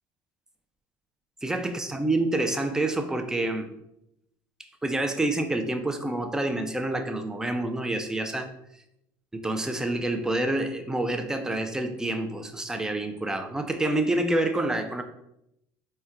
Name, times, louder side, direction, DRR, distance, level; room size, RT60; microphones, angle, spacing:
voice 1, 1.4-3.7 4.8-8.5 9.3-15.0, right 2 dB, 5° right, 6 dB, 0.4 m, -27 dB
4.3 x 2.2 x 3.5 m, 0.80 s
cardioid pair, 115°, 9 cm